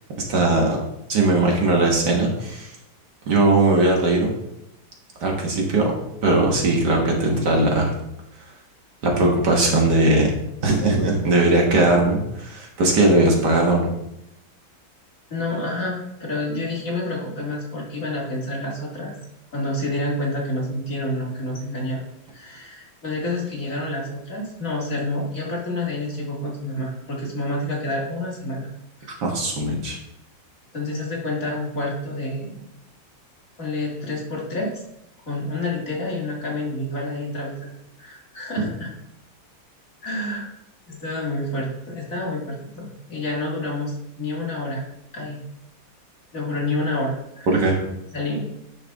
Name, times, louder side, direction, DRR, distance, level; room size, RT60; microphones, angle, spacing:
voice 1, 0.3-0.8 1.1-2.7 3.3-4.3 5.2-5.9 6.2-7.9 9.0-10.3 10.6-13.9 29.2-30.0 47.5-47.8, right 2 dB, 60° right, 0 dB, 1.9 m, -19 dB
voice 2, 15.3-19.1 19.5-22.0 22.3-28.7 29.0-29.1 30.7-32.6 33.6-34.8 35.2-37.7 38.0-38.9 40.0-40.5 40.9-44.9 45.1-45.4 46.3-47.7 48.1-48.4, left 1 dB, 45° left, -3 dB, 2.2 m, -28 dB
9.8 x 5.9 x 3.5 m, 0.84 s
omnidirectional pair, 2.2 m